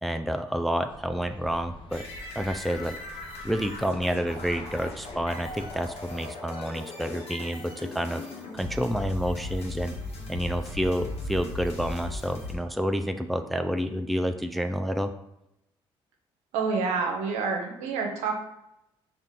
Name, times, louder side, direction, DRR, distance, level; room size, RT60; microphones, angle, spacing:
voice 1, 0.0-2.0 2.4-3.0 3.4-8.3 8.5-10.0 10.3-15.1, equal, ahead, 7 dB, 0.3 m, -29 dB
Embankment Pier - Waiting for boat, 0.9-6.1, left 1 dB, 45° left, 0.8 m, -46 dB
sound 1, 1.9-12.5, left 2 dB, 60° left, 1.1 m, -38 dB
voice 2, 16.5-18.4, right 4 dB, 80° right, 2 dB, 0.7 m, -28 dB
4.2 x 2.5 x 3.6 m, 0.84 s
supercardioid pair, 60°, 12 cm